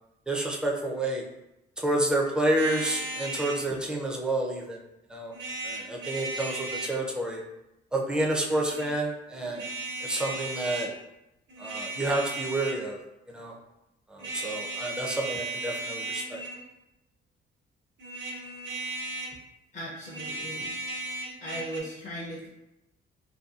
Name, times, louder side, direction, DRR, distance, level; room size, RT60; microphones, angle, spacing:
voice 1, 0.3-1.2 1.8-4.8 5.1-5.3 5.6-7.4 7.9-9.7 10.0-10.9 11.6-13.0 13.3-13.5 14.1-16.4, right 1 dB, 5° right, -1 dB, 0.4 m, -29 dB
sound 1, 2.6-3.6 5.3-7.0 8.5-8.9 9.5-10.9 11.5-12.9 14.2-16.6 18.0-19.4 20.0-21.8, right 2 dB, 65° right, 0.6 m, -36 dB
voice 2, 19.7-21.0 21.4-22.5, equal, 40° left, -5 dB, 0.6 m, -38 dB
2.7 x 2.2 x 2.3 m, 0.91 s
cardioid pair, 90°, 20 cm